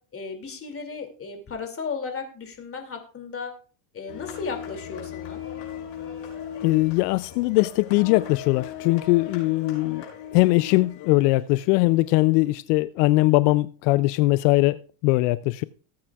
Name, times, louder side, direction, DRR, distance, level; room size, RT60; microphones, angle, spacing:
voice 1, 0.1-3.5 3.9-5.4, left 5 dB, 25° left, 2.5 m, -35 dB
sound 1, 4.1-12.4, left 9 dB, 60° left, 5.8 m, -38 dB
voice 2, 6.6-10.0 10.3-15.6, left 21 dB, 80° left, 0.6 m, -21 dB
19.0 x 8.7 x 2.3 m
supercardioid pair, 120°, 49 cm